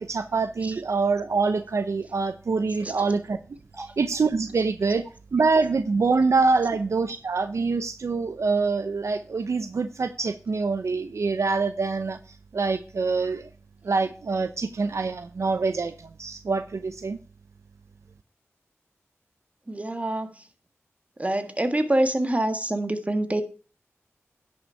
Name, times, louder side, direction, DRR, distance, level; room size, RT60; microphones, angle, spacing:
voice 1, 0.0-3.4 3.8-5.0 5.3-12.2 12.5-13.5 13.8-17.2, right 4 dB, 75° right, 10 dB, 0.7 m, -25 dB
voice 2, 19.7-20.5 21.2-23.4, right 1 dB, 30° right, 8 dB, 1.6 m, -26 dB
10.5 x 6.6 x 4.5 m, 0.36 s
cardioid pair, 40°, 5 cm